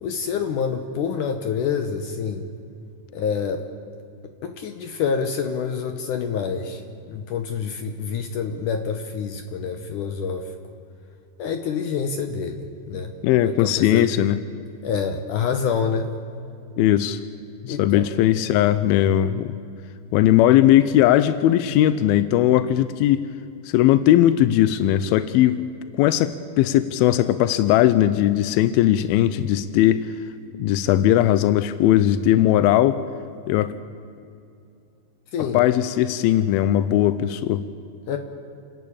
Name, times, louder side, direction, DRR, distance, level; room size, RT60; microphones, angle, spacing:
voice 1, 0.0-2.5 3.1-3.7 4.2-6.8 7.1-10.5 11.4-13.2 13.4-14.2 14.8-16.1 17.7-18.1 35.3-35.6 38.1-38.2, left 6 dB, 70° left, 6 dB, 2.2 m, -27 dB
voice 2, 13.2-14.4 16.8-17.2 17.6-19.5 20.1-23.2 23.7-25.6 25.9-30.1 30.5-33.0 33.5-33.7 35.4-37.6, left 12 dB, 85° left, 13 dB, 2.5 m, -18 dB
29.5 x 11.0 x 8.7 m, 2.5 s
omnidirectional pair, 4.2 m